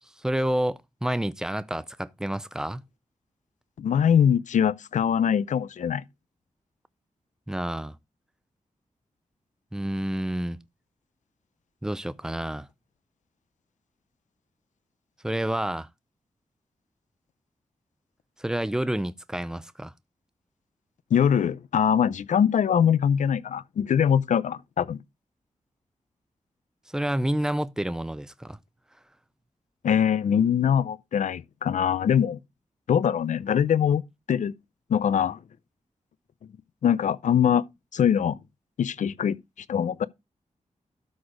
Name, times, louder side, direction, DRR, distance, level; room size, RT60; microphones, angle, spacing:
voice 1, 0.2-2.8 7.5-8.0 9.7-10.6 11.8-12.7 15.2-15.9 18.4-19.9 26.9-28.6, right 1 dB, 5° right, 0.5 m, -29 dB
voice 2, 3.8-6.0 21.1-25.0 29.8-32.4 32.9-34.0 34.3-34.5 34.9-35.4 36.8-37.6 37.9-38.4 38.8-39.4 39.7-40.1, left 8 dB, 85° left, 0.5 m, -22 dB
12.5 x 4.2 x 4.9 m
wide cardioid pair, 155°, 12 cm